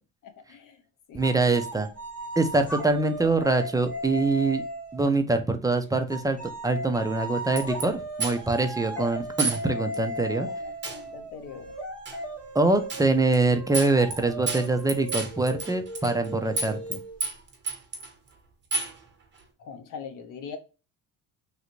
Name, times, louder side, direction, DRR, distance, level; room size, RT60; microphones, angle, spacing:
voice 1, 1.1-1.9 2.4-4.6 4.9-6.4 6.6-10.5 12.5-17.0, right 3 dB, 10° right, 0.3 m, -24 dB
sound 1, 1.2-5.1 6.1-17.4, equal, 5° left, 1.2 m, -36 dB
sound 2, 7.6-7.8 8.2-8.6 9.4-9.6 9.9-10.0 10.8-11.0 12.0-12.2 12.9-13.1 13.3-13.4 13.7-14.2 14.5-16.3 16.6-16.9 17.2-18.1 18.7-19.0, right 3 dB, 30° right, 1.1 m, -30 dB
voice 2, 10.5-11.7 19.6-20.6, left 6 dB, 60° left, 0.8 m, -41 dB
3.3 x 2.5 x 2.9 m
cardioid pair, 135°, 35 cm